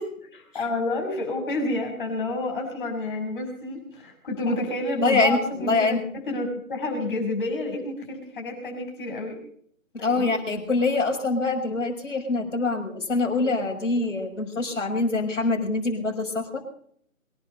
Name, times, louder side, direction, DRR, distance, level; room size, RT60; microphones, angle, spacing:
voice 1, 0.5-6.0 6.2-9.4 10.0-10.4, left 2 dB, 35° left, 2 dB, 6.5 m, -29 dB
voice 2, 5.0-6.0 10.0-16.6, left 3 dB, 60° left, 3 dB, 6.0 m, -24 dB
23.5 x 11.0 x 5.4 m, 0.62 s
figure-of-eight pair, 155°, 42 cm